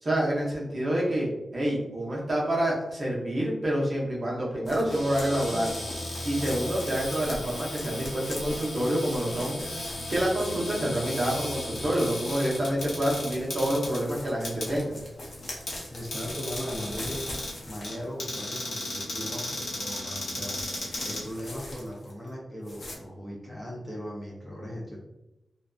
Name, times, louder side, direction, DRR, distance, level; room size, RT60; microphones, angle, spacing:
voice 1, 0.0-1.3 1.5-5.7 6.2-14.9, right 1 dB, 35° right, -4 dB, 0.7 m, -28 dB
sound 1, 4.7-18.1 18.5-18.6 20.4-22.3 22.6-23.0, left 1 dB, 55° left, 0.6 m, -43 dB
Cupboard open or close, 4.8-21.9, left 1 dB, 80° left, 0.9 m, -36 dB
voice 2, 15.9-17.2 17.7-20.6 21.0-25.0, equal, 10° left, -4 dB, 0.5 m, -38 dB
2.5 x 2.2 x 2.3 m, 0.93 s
wide cardioid pair, 155°, 0 cm